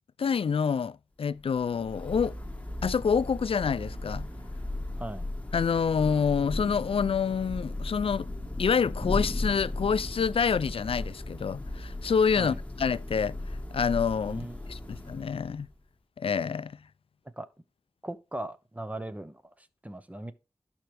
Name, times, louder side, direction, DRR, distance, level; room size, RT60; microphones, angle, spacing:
voice 1, 0.2-2.4 2.8-4.3 5.5-8.3 8.6-13.4 13.7-15.7 16.2-16.8, left 6 dB, 75° left, 0.4 m, -27 dB
Thunder / Rain, 1.4-15.8, left 1 dB, 15° left, 1.5 m, -36 dB
voice 2, 14.3-14.9 17.4-17.5 18.0-20.3, right 1 dB, 15° right, 0.9 m, -39 dB
11.5 x 4.5 x 3.4 m
wide cardioid pair, 65°, 10 cm